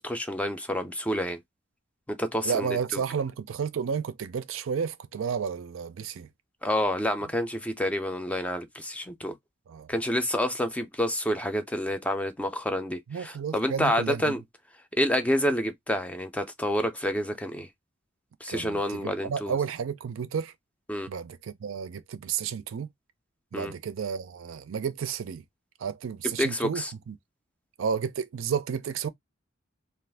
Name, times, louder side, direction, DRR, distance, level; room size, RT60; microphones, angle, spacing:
voice 1, 0.0-1.4 2.1-3.0 6.6-9.3 9.9-14.4 15.0-17.7 18.4-19.6 20.9-21.1 23.5-23.7 26.4-26.9, equal, 5° left, 0.4 m, -28 dB
voice 2, 2.4-6.3 9.7-9.9 13.1-14.4 18.5-20.5 21.1-22.9 23.5-25.4 25.8-27.1 27.8-29.1, right 7 dB, 75° right, 0.4 m, -32 dB
2.5 x 2.4 x 3.3 m
head